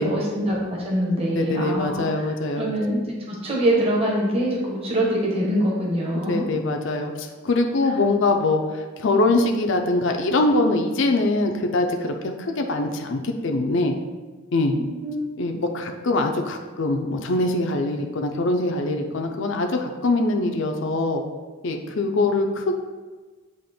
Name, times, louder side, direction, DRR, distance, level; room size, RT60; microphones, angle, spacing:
voice 1, 0.0-6.4 7.8-7.9 14.8-15.2, right 1 dB, 30° right, -3 dB, 1.2 m, -24 dB
voice 2, 1.4-2.7 6.3-13.9 14.5-14.8 15.4-21.2 21.6-22.8, left 2 dB, 60° left, 4 dB, 0.5 m, -23 dB
7.9 x 3.0 x 4.3 m, 1.3 s
head